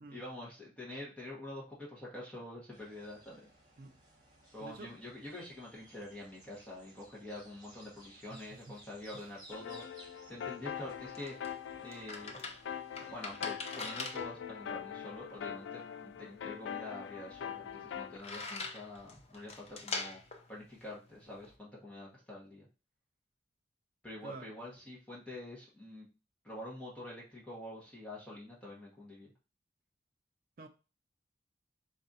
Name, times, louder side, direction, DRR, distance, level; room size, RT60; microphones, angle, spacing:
voice 1, 0.1-3.5 4.5-9.8 10.3-11.4 11.8-12.3 13.1-20.2 20.5-22.7 24.0-26.1 26.4-29.3, left 1 dB, 5° left, 1.1 m, -46 dB
sound 1, 2.7-13.5, right 1 dB, 20° right, 1.2 m, -60 dB
voice 2, 4.6-4.9 8.3-8.8 9.1-9.3 13.0-13.1 24.2-24.5 30.6-30.7, right 3 dB, 50° right, 0.4 m, -50 dB
sound 2, 9.5-18.2, left 8 dB, 80° left, 0.3 m, -43 dB
sound 3, 10.7-21.6, left 3 dB, 35° left, 0.5 m, -44 dB
4.0 x 2.5 x 4.0 m
head